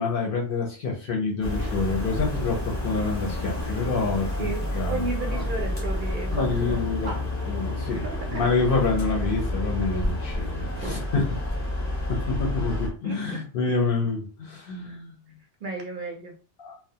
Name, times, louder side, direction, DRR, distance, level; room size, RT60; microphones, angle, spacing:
voice 1, 0.0-5.4 6.3-7.1 7.5-8.0 8.3-11.3 12.3-15.1 16.6-16.8, left 4 dB, 60° left, -1 dB, 0.7 m, -27 dB
sound 1, 1.4-12.9, left 1 dB, 20° left, 0.7 m, -29 dB
voice 2, 4.4-7.2 7.9-8.4 10.8-11.1 13.0-13.4 14.8-15.0 15.6-16.3, right 3 dB, 60° right, 1 dB, 0.6 m, -34 dB
2.3 x 2.0 x 2.7 m, 0.38 s
omnidirectional pair, 1.2 m